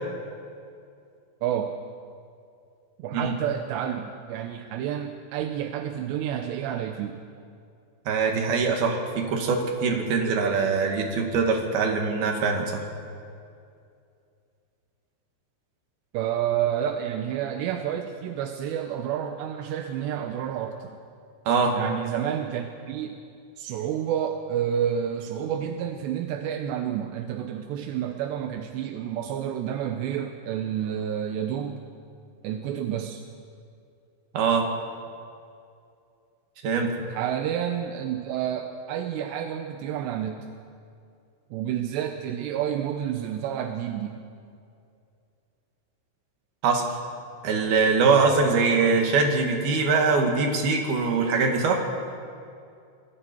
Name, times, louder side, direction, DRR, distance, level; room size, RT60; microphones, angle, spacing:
voice 1, 1.4-1.7 3.0-7.2 16.1-21.0 21.7-23.2 23.6-31.8 32.4-33.2 37.1-40.5 41.5-44.2, right 9 dB, 75° right, 5 dB, 2.6 m, -29 dB
voice 2, 8.1-12.8 21.5-21.8 34.3-34.6 36.6-36.9 46.6-46.8 47.4-51.8, right 4 dB, 55° right, 2 dB, 3.5 m, -23 dB
27.0 x 21.5 x 4.5 m, 2.5 s
omnidirectional pair, 5.8 m